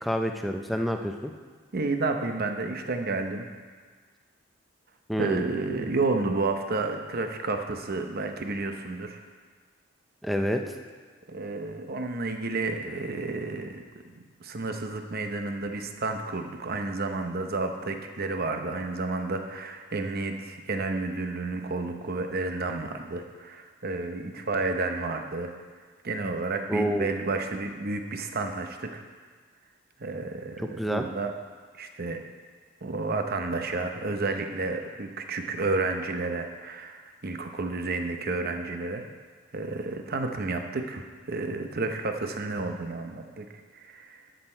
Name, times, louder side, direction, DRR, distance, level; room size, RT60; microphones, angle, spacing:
voice 1, 0.0-1.3 5.1-5.4 10.2-10.8 26.7-27.1 30.8-31.1, equal, ahead, 4 dB, 0.5 m, -28 dB
voice 2, 1.7-3.5 5.2-9.2 11.3-14.1 14.4-25.5 26.0-29.0 30.0-31.3 31.7-32.2 32.8-39.1 39.5-44.2, right 3 dB, 45° right, 5 dB, 0.8 m, -31 dB
13.0 x 6.4 x 4.4 m, 1.5 s
head